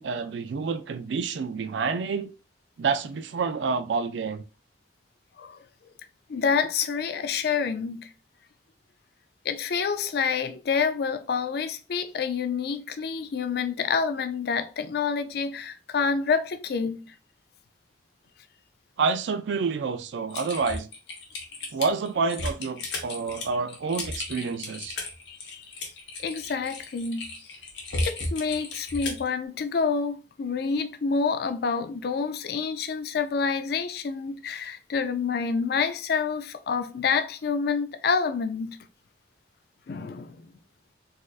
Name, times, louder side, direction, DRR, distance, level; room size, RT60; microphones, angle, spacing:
voice 1, 0.0-2.3 2.8-4.4 19.0-20.9 21.7-25.0, right 5 dB, 85° right, 0.4 m, -28 dB
voice 2, 6.3-8.1 9.4-17.1 25.3-25.6 26.2-27.2 28.0-38.8 39.9-40.5, left 5 dB, 60° left, 0.4 m, -28 dB
Typing, 20.3-29.3, left 2 dB, 85° left, 1.0 m, -34 dB
4.1 x 2.5 x 2.4 m
head